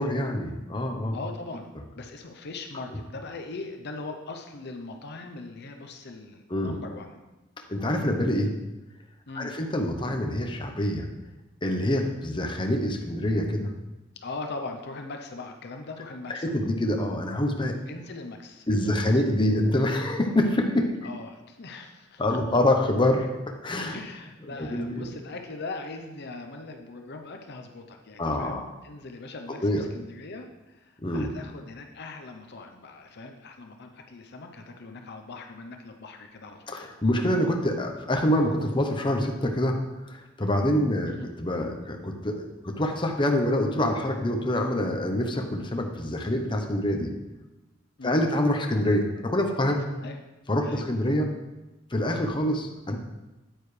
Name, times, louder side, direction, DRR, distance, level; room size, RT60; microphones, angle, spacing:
voice 1, 0.0-1.2 6.5-6.7 7.7-8.5 9.4-11.1 11.6-13.7 16.3-17.8 18.7-20.9 22.2-23.3 23.6-24.0 24.6-25.1 28.2-28.7 29.6-29.8 31.0-31.3 36.7-39.8 40.0-41.1 41.4-47.1 48.0-49.8 50.5-51.3 51.9-53.0, left 1 dB, 25° left, 3 dB, 0.9 m, -26 dB
voice 2, 1.1-7.2 9.3-9.6 14.2-16.6 17.9-19.2 21.0-22.6 23.9-36.9 41.1-41.3 48.0-48.3 50.0-50.2 50.6-50.8, left 3 dB, 55° left, 4 dB, 0.7 m, -40 dB
9.2 x 9.1 x 3.3 m, 1.0 s
head